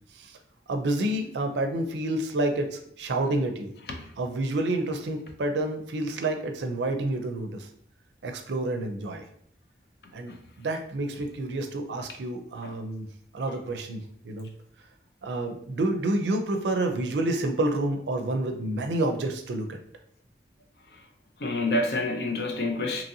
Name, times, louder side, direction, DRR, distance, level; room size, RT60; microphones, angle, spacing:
voice 1, 0.7-3.7 4.2-7.7 8.2-9.2 10.1-10.3 10.6-13.1 13.3-14.5 15.2-19.8, right 2 dB, 85° right, 5 dB, 0.4 m, -29 dB
voice 2, 21.4-23.0, left 2 dB, 65° left, 4 dB, 0.5 m, -28 dB
2.9 x 2.6 x 2.7 m, 0.64 s
head